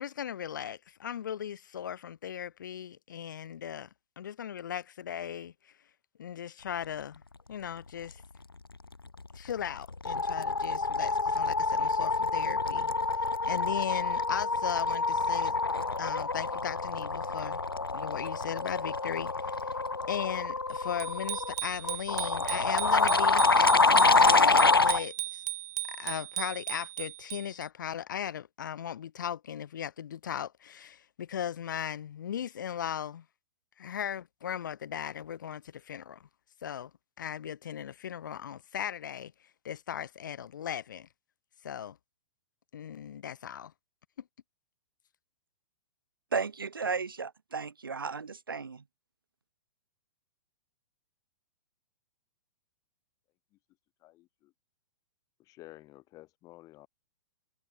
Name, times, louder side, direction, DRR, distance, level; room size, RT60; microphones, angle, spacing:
voice 1, 0.0-3.9 4.2-5.7 6.2-7.2 7.5-8.2 9.3-12.9 13.2-15.6 16.0-17.6 17.9-19.8 20.1-25.4 25.9-33.3 33.8-36.3 36.6-36.9 37.2-39.3 39.6-41.1 41.6-42.0 42.7-43.7, left 9 dB, 55° left, 7.4 m, -37 dB
sound 1, 9.2-9.5 9.8-25.0, left 3 dB, 85° left, 0.6 m, -27 dB
Bicycle bell, 21.0-27.7, right 15 dB, 45° right, 5.5 m, -37 dB
voice 2, 46.3-48.8, right 5 dB, 70° right, 2.8 m, -34 dB
voice 3, 54.0-54.5 55.4-56.9, left 17 dB, 30° left, 5.5 m, -52 dB
figure-of-eight pair, 110°, 12 cm